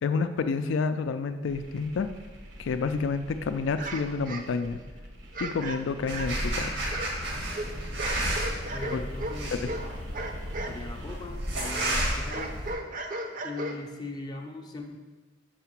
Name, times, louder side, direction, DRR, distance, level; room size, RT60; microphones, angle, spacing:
voice 1, 0.0-2.1 2.6-4.8 5.4-6.7 8.9-9.0 9.5-9.7, left 4 dB, 90° left, 10 dB, 0.4 m, -29 dB
sound 1, 1.4-11.2, equal, 75° right, 1.1 m, -47 dB
sound 2, 3.7-4.9 5.3-6.5 6.9-10.8 11.1-14.1, right 2 dB, 45° right, 0.6 m, -37 dB
sound 3, 6.1-12.7, right 1 dB, 90° right, 1.8 m, -32 dB
voice 2, 8.7-9.8 10.6-12.7 13.4-15.0, left 3 dB, 20° left, 3 dB, 0.4 m, -40 dB
5.7 x 4.9 x 5.9 m, 1.3 s
head